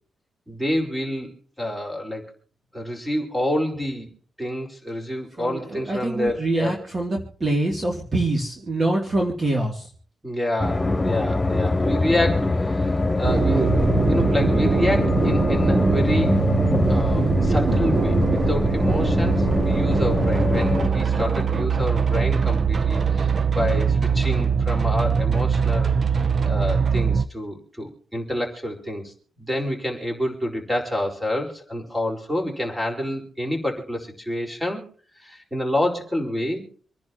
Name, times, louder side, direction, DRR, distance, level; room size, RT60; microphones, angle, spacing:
voice 1, 0.5-1.3 1.6-2.3 2.7-4.1 4.4-6.7 10.2-16.3 16.9-25.9 26.4-34.8 35.2-36.7, left 1 dB, 10° right, 1 dB, 4.7 m, -28 dB
voice 2, 5.4-9.9, right 2 dB, 35° right, 0 dB, 2.8 m, -25 dB
sound 1, 10.6-20.9, left 2 dB, 15° left, 4.4 m, -23 dB
sound 2, 13.2-27.3, right 5 dB, 50° right, 0.8 m, -22 dB
27.0 x 10.5 x 3.0 m, 0.43 s
cardioid pair, 105°, 0 cm